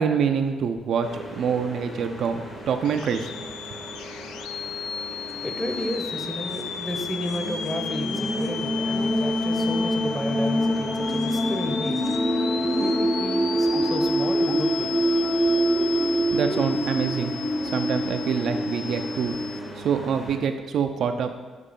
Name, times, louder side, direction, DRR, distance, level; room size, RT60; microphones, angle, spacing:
voice 1, 0.0-3.3 16.3-17.3 17.7-19.4 19.8-21.3, right 6 dB, 55° right, 6 dB, 0.4 m, -26 dB
sound 1, 1.0-20.4, equal, 45° left, 1.7 m, -40 dB
sound 2, 2.8-19.6, left 8 dB, 70° left, 0.3 m, -35 dB
voice 2, 5.0-12.4 12.6-14.9 16.3-16.4, left 1 dB, 15° left, 4 dB, 1.0 m, -33 dB
sound 3, 5.2-5.8 6.1-6.2 7.2-19.7, equal, 5° right, 0.6 m, -25 dB
7.4 x 3.2 x 5.3 m, 1.4 s
figure-of-eight pair, 40°, 0 cm